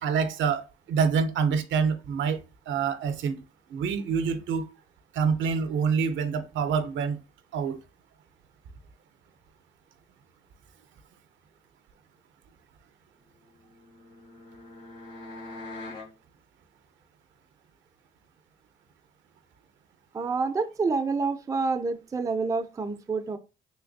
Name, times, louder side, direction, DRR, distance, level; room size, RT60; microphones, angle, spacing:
voice 1, 0.0-2.4 2.7-3.4 3.7-4.7 5.1-7.2 7.5-7.8, right 6 dB, 70° right, 0.6 m, -26 dB
sound 1, 13.5-16.1, left 2 dB, 70° left, 1.8 m, -43 dB
voice 2, 20.1-23.4, right 4 dB, 15° right, 0.4 m, -28 dB
3.2 x 3.0 x 2.6 m
cardioid pair, 95°, 20 cm